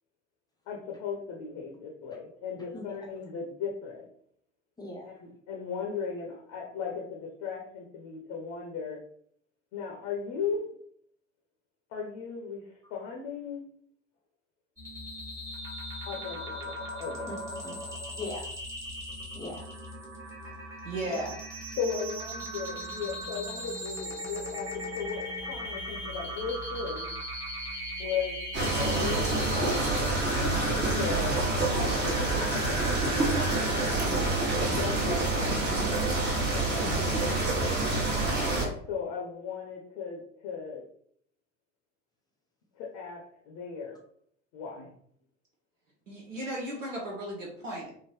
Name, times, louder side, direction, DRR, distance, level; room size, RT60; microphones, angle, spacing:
voice 1, 0.7-4.1 5.0-9.0 9.7-10.7 11.9-13.7 16.1-17.6 17.9-18.0 21.8-27.1 28.0-28.4 28.7-30.1 30.3-31.4 31.7-32.9 34.5-35.8 36.5-37.1 38.6-40.9 42.8-44.0 44.5-44.9, left 6 dB, 40° left, 0 dB, 0.8 m, -37 dB
voice 2, 4.8-5.1 17.3-17.4 17.6-17.8 18.1-18.5 19.3-19.7 21.0-21.2 37.9-38.6, left 2 dB, 10° left, -3 dB, 0.8 m, -40 dB
sound 1, 14.8-33.9, equal, 5° right, 1.2 m, -38 dB
voice 3, 20.8-21.3 36.8-37.3 44.8-44.9 46.1-47.9, right 1 dB, 75° right, -2 dB, 0.9 m, -36 dB
sound 2, 28.5-38.7, right 2 dB, 25° right, 1.2 m, -27 dB
3.7 x 2.1 x 3.1 m, 0.63 s
figure-of-eight pair, 70°, 39 cm